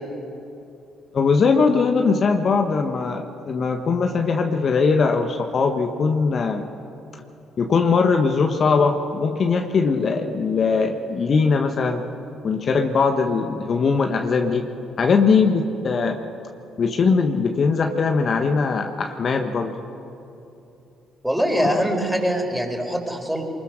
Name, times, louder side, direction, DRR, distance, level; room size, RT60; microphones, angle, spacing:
voice 1, 1.1-6.6 7.6-12.0 12.4-14.7 15.0-16.2 16.8-19.8 21.5-21.8, left 4 dB, 50° left, 5 dB, 1.3 m, -20 dB
voice 2, 21.2-23.4, equal, 5° right, 2 dB, 4.5 m, -23 dB
24.5 x 21.0 x 6.4 m, 2.8 s
hypercardioid pair, 50°, 0 cm